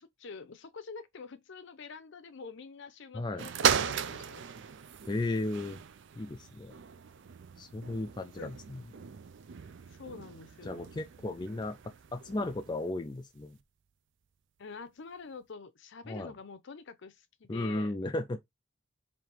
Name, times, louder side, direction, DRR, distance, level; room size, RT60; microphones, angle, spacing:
voice 1, 0.0-4.5 8.3-8.5 9.9-10.9 11.3-11.5 14.6-17.9, left 5 dB, 60° left, 0.6 m, -47 dB
voice 2, 3.1-3.5 5.1-5.8 6.2-6.7 7.6-8.8 10.6-11.8 12.1-13.6 16.1-16.3 17.5-18.4, left 2 dB, 20° left, 0.4 m, -35 dB
sound 1, 3.4-12.9 13.6-13.7, right 8 dB, 60° right, 0.4 m, -37 dB
3.3 x 2.9 x 4.4 m
head